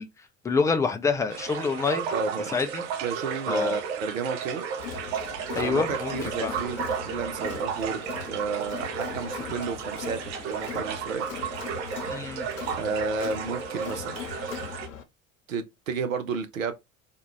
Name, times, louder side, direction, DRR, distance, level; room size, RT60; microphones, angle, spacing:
voice 1, 0.0-2.1 2.5-2.8 3.5-3.8 5.5-6.5 12.1-12.5, left 5 dB, 10° left, 0.3 m, -27 dB
sound 1, 1.3-14.9, right 7 dB, 60° right, 1.0 m, -34 dB
voice 2, 2.1-2.5 3.0-4.6 5.6-11.3 12.8-14.2 15.5-16.7, right 4 dB, 80° right, 0.6 m, -32 dB
Crowd, 4.8-15.0, left 7 dB, 75° left, 0.8 m, -39 dB
3.6 x 2.2 x 3.3 m
figure-of-eight pair, 65°, 39 cm